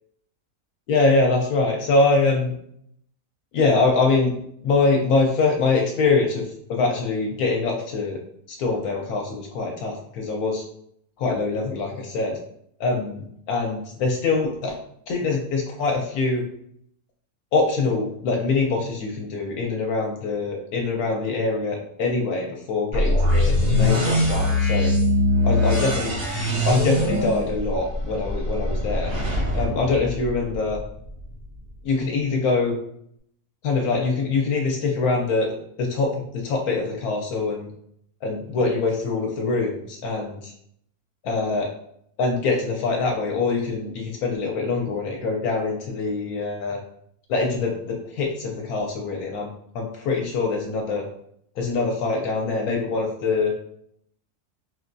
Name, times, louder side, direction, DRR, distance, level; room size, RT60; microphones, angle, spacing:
voice 1, 0.9-2.5 3.5-4.3 4.6-6.4 6.7-8.2 8.6-10.6 11.2-12.4 12.8-14.7 15.1-16.4 17.5-24.9 25.4-26.2 26.5-29.1 29.5-30.8 31.8-32.8 33.6-35.5 35.8-37.7 38.2-40.5 41.2-41.7 42.2-46.8 47.3-49.5 49.7-51.0 51.6-53.5, left 3 dB, 75° left, 0 dB, 1.0 m, -24 dB
sound 1, 22.9-30.8, left 1 dB, 80° right, 1.7 m, -22 dB
4.3 x 2.2 x 2.5 m, 0.69 s
omnidirectional pair, 1.7 m